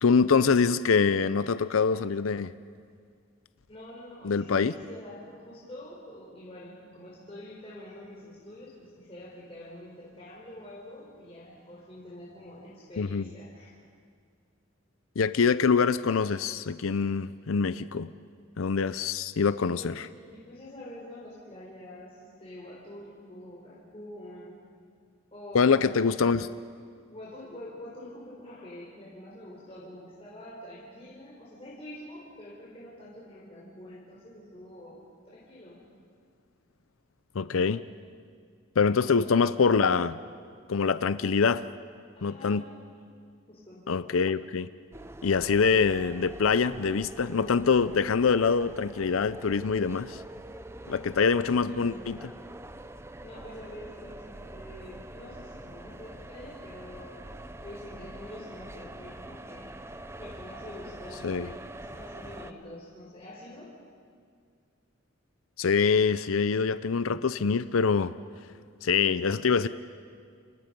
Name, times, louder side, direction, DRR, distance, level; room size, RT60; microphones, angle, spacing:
voice 1, 0.0-2.5 4.2-4.7 13.0-13.2 15.2-18.1 18.6-20.1 25.5-26.5 37.3-37.8 38.8-40.2 40.7-41.7 42.2-42.6 43.9-44.7 45.2-50.2 50.9-52.3 61.2-61.5 65.6-68.1 68.8-69.7, left 5 dB, 90° left, 14 dB, 0.6 m, -24 dB
voice 2, 3.7-13.7 19.7-24.7 25.3-26.3 27.1-35.9 38.9-39.0 42.1-42.8 43.5-43.9 51.4-52.4 53.2-63.8, left 1 dB, 30° left, -6 dB, 4.5 m, -46 dB
sound 1, 44.9-62.5, right 1 dB, 15° right, 0.6 m, -44 dB
29.5 x 28.0 x 5.3 m, 2.1 s
head